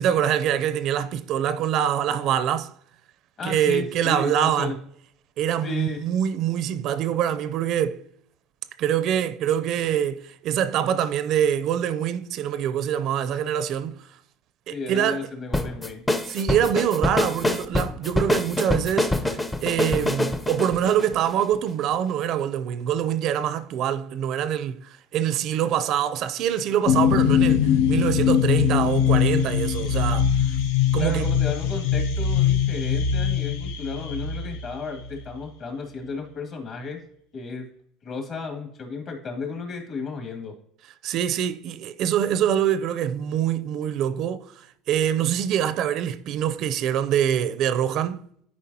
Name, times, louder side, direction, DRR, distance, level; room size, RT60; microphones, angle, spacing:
voice 1, 0.0-2.7 3.4-4.7 5.4-8.0 8.8-14.0 14.7-15.2 16.3-19.1 19.6-30.3 30.9-31.3 41.0-44.5 44.9-48.2, right 10 dB, 55° right, 0.5 m, -24 dB
voice 2, 3.4-4.8 5.6-6.0 14.7-16.0 31.0-37.0 37.3-37.7 38.0-40.5, left 4 dB, 45° left, 2.4 m, -33 dB
sound 1, 15.5-21.8, left 2 dB, 10° left, 0.6 m, -25 dB
sound 2, 26.9-35.4, left 8 dB, 85° left, 0.6 m, -22 dB
11.0 x 4.9 x 2.8 m
supercardioid pair, 110°, 0 cm